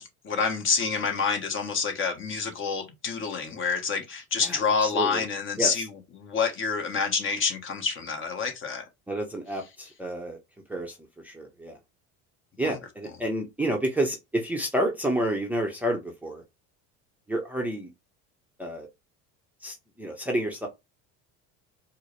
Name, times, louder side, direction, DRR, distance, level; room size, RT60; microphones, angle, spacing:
voice 1, 0.0-8.8 12.6-12.8, left 5 dB, 35° left, 1.1 m, -28 dB
voice 2, 4.8-5.2 5.6-5.7 9.1-10.4 10.7-11.0 11.2-11.8 12.6-16.4 17.3-17.9 18.6-18.9 19.6-20.7, right 1 dB, 5° right, 0.7 m, -29 dB
4.5 x 2.1 x 3.1 m
supercardioid pair, 115°, 34 cm